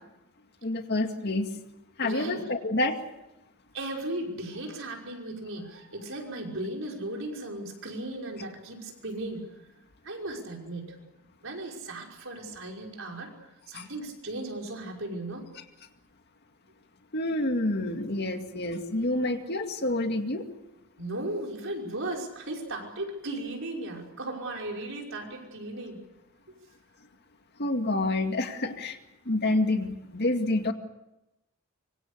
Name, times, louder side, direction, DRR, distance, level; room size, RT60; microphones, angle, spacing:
voice 1, 0.6-1.5 2.0-3.0 13.7-13.9 17.1-20.4 27.6-29.0 29.3-30.7, left 2 dB, 50° left, 6 dB, 2.1 m, -28 dB
voice 2, 2.0-2.4 3.7-9.5 10.0-11.0 11.4-13.3 13.7-15.5 21.0-26.0, right 1 dB, 60° right, 1 dB, 5.7 m, -36 dB
25.5 x 24.5 x 6.7 m, 0.94 s
head